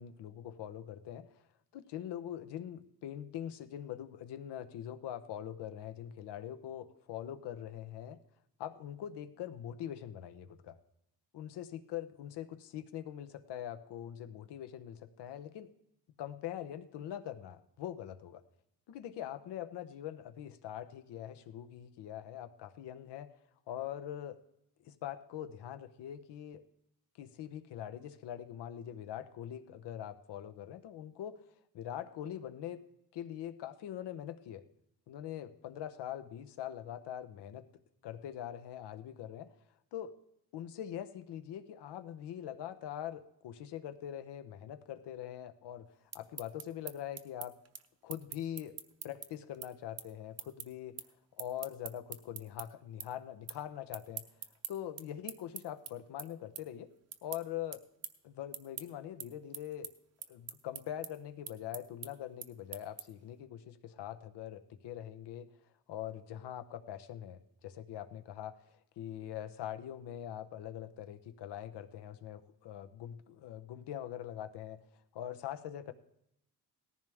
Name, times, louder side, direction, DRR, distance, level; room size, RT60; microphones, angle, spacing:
voice 1, 0.0-1.4 1.7-8.2 8.6-10.8 11.3-15.7 16.2-18.4 18.9-23.3 23.7-24.4 24.8-26.6 27.2-31.4 31.7-32.8 33.1-34.6 35.1-37.7 38.0-39.5 39.9-40.1 40.5-45.9 46.1-47.6 48.0-48.7 49.0-51.0 51.4-54.2 54.7-56.9 57.2-57.8 58.2-59.9 60.3-65.5 65.9-74.8 75.1-75.9, left 11 dB, 85° left, 10 dB, 1.0 m, -43 dB
sound 1, 45.9-52.7 53.0-53.6 53.9-63.3, right 8 dB, 40° right, 0.7 m, -45 dB
18.0 x 14.0 x 3.5 m, 0.80 s
cardioid pair, 175°, 40 cm